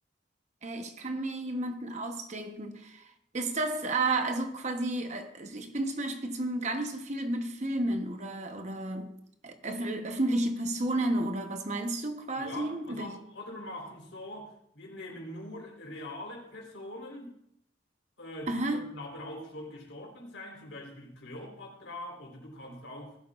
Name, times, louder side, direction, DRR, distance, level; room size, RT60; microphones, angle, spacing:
voice 1, 0.6-3.1 3.3-9.1 9.4-13.1 18.5-18.8, right 2 dB, 35° right, 1.0 m, -32 dB
voice 2, 12.3-17.3 18.2-23.2, left 1 dB, 75° left, 4.0 m, -43 dB
19.0 x 11.5 x 2.5 m
head